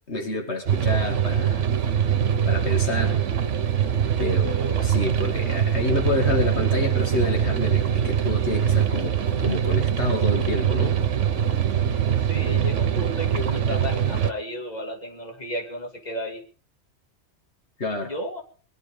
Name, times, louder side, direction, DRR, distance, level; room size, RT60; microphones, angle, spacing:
voice 1, 0.1-1.7 2.5-3.2 4.2-9.1 9.4-11.0 17.8-18.1, left 2 dB, 65° left, 4 dB, 2.5 m, -28 dB
sound 1, 0.7-14.3, right 9 dB, 90° right, 1.4 m, -23 dB
voice 2, 12.3-16.4 18.0-18.4, left 1 dB, 35° left, 4 dB, 2.7 m, -33 dB
22.0 x 11.0 x 5.2 m, 0.39 s
omnidirectional pair, 1.2 m